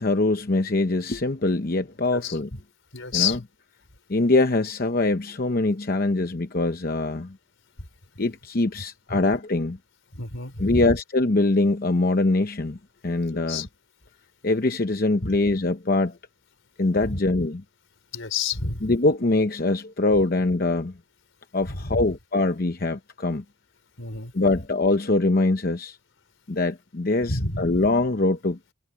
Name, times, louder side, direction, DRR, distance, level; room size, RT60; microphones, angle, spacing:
voice 1, 0.0-2.5 3.1-3.4 4.1-7.4 8.2-9.8 10.6-12.8 13.0-13.7 14.4-16.2 16.8-17.6 18.8-20.9 21.5-23.4 24.3-26.0 26.5-28.6, left 2 dB, 45° left, 0.8 m, -23 dB
voice 2, 2.9-3.4 9.1-9.2 10.1-10.9 13.3-13.7 15.2-15.4 17.0-17.2 18.1-18.9 21.7-22.1 24.0-24.3 27.3-27.7, left 4 dB, 80° left, 4.1 m, -29 dB
head